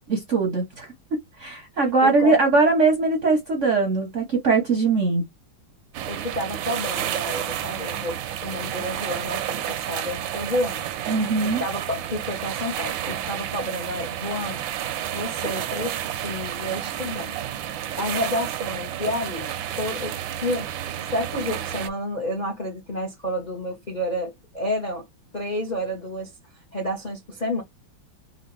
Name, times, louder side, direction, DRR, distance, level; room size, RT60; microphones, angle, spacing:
voice 1, 0.1-5.3 11.1-11.6, right 3 dB, 55° right, 0.9 m, -21 dB
voice 2, 2.0-2.4 6.1-10.9 11.4-14.6 14.9-17.4 18.0-19.5 19.8-20.7 21.1-25.1 25.3-26.3 26.7-27.6, left 1 dB, 45° left, 0.5 m, -30 dB
sound 1, 5.9-21.9, right 11 dB, 75° right, 1.3 m, -31 dB
4.3 x 2.3 x 3.1 m
omnidirectional pair, 2.2 m